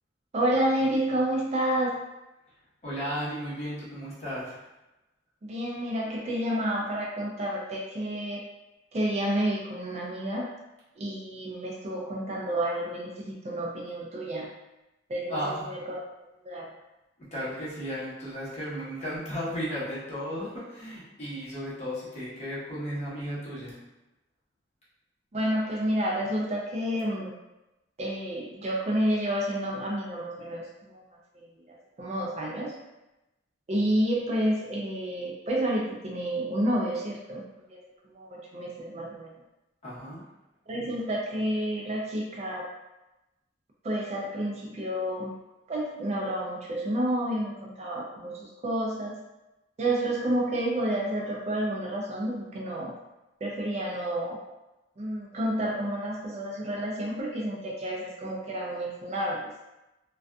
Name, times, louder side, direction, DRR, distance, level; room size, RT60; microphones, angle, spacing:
voice 1, 0.3-2.0 5.4-8.4 8.9-10.5 11.0-14.5 15.1-16.0 16.4-16.7 25.3-27.3 28.0-31.0 31.3-31.5 32.0-32.8 33.7-37.4 37.7-37.8 38.1-39.4 40.7-42.7 43.8-45.3 45.7-49.2 49.8-52.9 53.4-54.4 55.0-59.5, right 1 dB, 35° right, -3 dB, 0.4 m, -30 dB
voice 2, 2.8-4.6 15.3-15.7 17.2-23.8 39.8-40.2, equal, 35° left, -9 dB, 1.0 m, -34 dB
2.5 x 2.3 x 2.3 m, 0.98 s
head